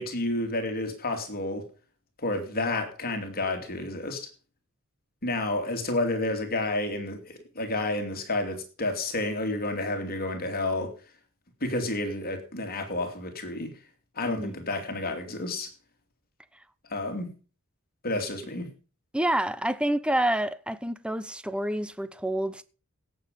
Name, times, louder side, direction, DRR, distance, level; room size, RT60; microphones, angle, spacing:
voice 1, 0.0-1.7 2.2-4.3 5.2-10.9 11.6-13.7 14.2-15.7 16.9-17.4 18.0-18.7, left 2 dB, 45° left, 2.9 m, -30 dB
voice 2, 14.3-14.6 19.1-22.6, right 1 dB, 5° right, 0.7 m, -28 dB
17.0 x 7.4 x 5.3 m
head